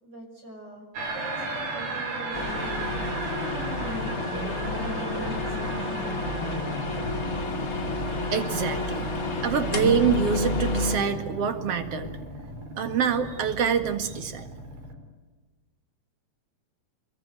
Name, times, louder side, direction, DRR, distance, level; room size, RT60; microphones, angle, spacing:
voice 1, 0.0-0.9 1.1-3.1 3.8-6.5, right 2 dB, 25° right, 3 dB, 6.1 m, -42 dB
sound 1, 1.0-14.9, right 2 dB, 65° right, 6.2 m, -35 dB
sound 2, 2.3-11.0, left 2 dB, 30° left, 1.9 m, -30 dB
voice 2, 8.3-9.1 9.4-12.1 12.8-14.5, right 7 dB, 50° right, 9 dB, 2.1 m, -26 dB
25.0 x 23.0 x 8.4 m, 1.2 s
omnidirectional pair, 4.9 m